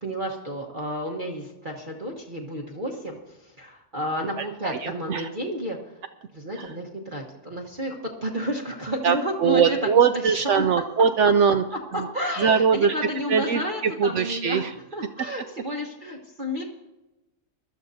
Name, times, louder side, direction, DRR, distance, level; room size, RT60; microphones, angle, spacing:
voice 1, 0.0-3.2 3.6-5.8 6.3-8.0 8.2-9.8 10.1-10.7 12.1-14.6 14.9-16.6, equal, 35° right, -1 dB, 1.2 m, -31 dB
voice 2, 4.4-5.3 6.5-6.8 9.0-11.6 11.9-12.1 12.4-12.9 13.3-14.7, right 6 dB, 70° right, 10 dB, 0.7 m, -22 dB
21.0 x 13.0 x 2.7 m, 1.0 s
omnidirectional pair, 1.7 m